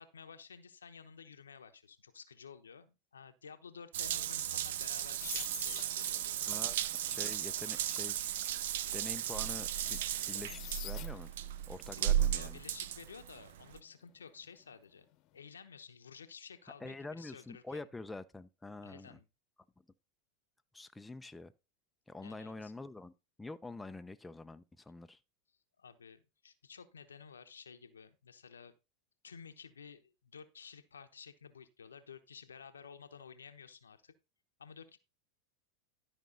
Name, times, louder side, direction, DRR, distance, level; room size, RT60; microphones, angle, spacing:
voice 1, 0.0-6.5 12.0-12.1 12.3-15.1 15.3-17.9 18.8-19.3 22.2-22.7 25.8-28.7 29.2-34.1 34.6-35.0, left 6 dB, 90° left, 1.0 m, -53 dB
Water tap faucet / Bathtub (filling or washing) / Drip, 3.9-13.8, right 12 dB, 70° right, 0.6 m, -35 dB
sound 1, 4.8-11.5 11.9-14.8 15.0-15.4, left 15 dB, 50° left, 1.0 m, -50 dB
voice 2, 6.5-6.8 7.1-8.3 8.9-10.0 10.3-11.3 11.7-12.6 16.8-19.2 20.7-21.5 22.1-23.1 23.4-25.2, left 2 dB, 10° left, 0.7 m, -46 dB
12.5 x 5.3 x 3.9 m
hypercardioid pair, 95°, 0 cm